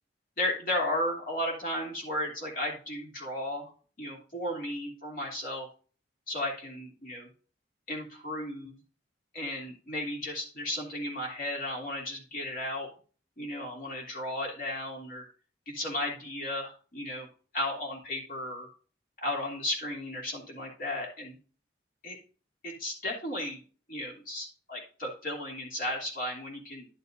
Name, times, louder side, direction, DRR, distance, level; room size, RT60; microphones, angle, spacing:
voice 1, 0.4-3.7 4.0-5.7 6.3-7.3 7.9-8.7 9.3-12.9 13.4-15.3 15.7-17.3 17.5-18.7 19.2-21.4 22.0-22.2 22.6-23.6 23.9-26.9, left 1 dB, 50° left, -1 dB, 2.9 m, -34 dB
11.5 x 6.7 x 2.6 m, 0.40 s
head